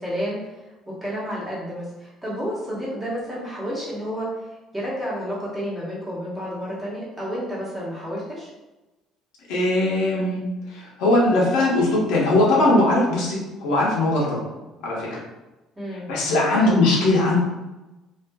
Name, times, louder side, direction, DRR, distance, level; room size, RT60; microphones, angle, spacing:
voice 1, 0.0-8.5 15.8-16.1 16.6-16.7, equal, 15° right, -7 dB, 1.0 m, -31 dB
voice 2, 9.5-14.4 14.8-15.2 16.1-17.4, left 2 dB, 85° left, -4 dB, 0.8 m, -20 dB
2.5 x 2.4 x 2.2 m, 1.1 s
cardioid pair, 115°, 0 cm